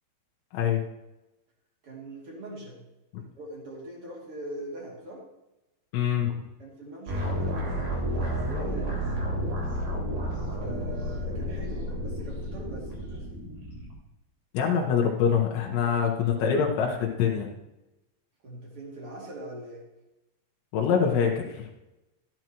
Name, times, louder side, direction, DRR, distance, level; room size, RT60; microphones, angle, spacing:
voice 1, 0.5-0.8 5.9-6.4 14.5-17.5 20.7-21.7, left 7 dB, 85° left, -1 dB, 3.5 m, -25 dB
voice 2, 1.8-2.8 3.2-5.2 6.6-9.0 10.6-13.3 15.8-15.9 18.4-19.9, right 1 dB, 35° right, -3 dB, 2.9 m, -42 dB
sound 1, 7.1-13.9, equal, 60° right, 5.2 m, -31 dB
14.0 x 11.0 x 3.0 m, 0.96 s
omnidirectional pair, 5.1 m